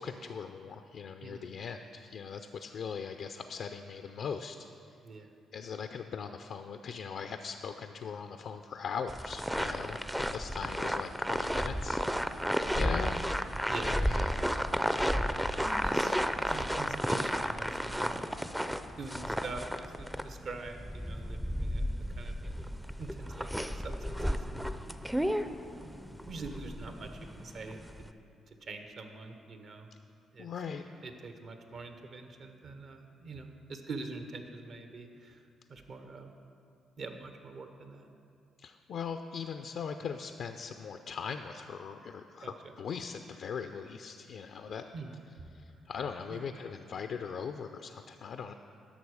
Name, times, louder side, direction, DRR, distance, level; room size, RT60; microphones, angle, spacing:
voice 1, 0.0-4.6 5.5-12.0 12.7-13.2 13.8-14.7 30.4-30.8 38.6-44.8 45.5-48.5, left 6 dB, 65° left, 7 dB, 0.4 m, -40 dB
voice 2, 1.2-1.5 5.0-5.3 13.7-14.0 15.6-16.1 16.5-18.2 19.0-21.8 22.2-22.6 23.0-24.4 25.1-25.4 26.2-28.1 28.6-29.9 30.3-30.5 31.0-35.4 35.7-36.3 37.0-38.1 42.4-42.5 44.9-45.1 46.3-46.4, right 3 dB, 60° right, 6 dB, 0.9 m, -44 dB
sound 1, 9.1-28.1, equal, 5° right, 0.4 m, -33 dB
11.0 x 6.7 x 4.8 m, 2.5 s
cardioid pair, 80°, 0 cm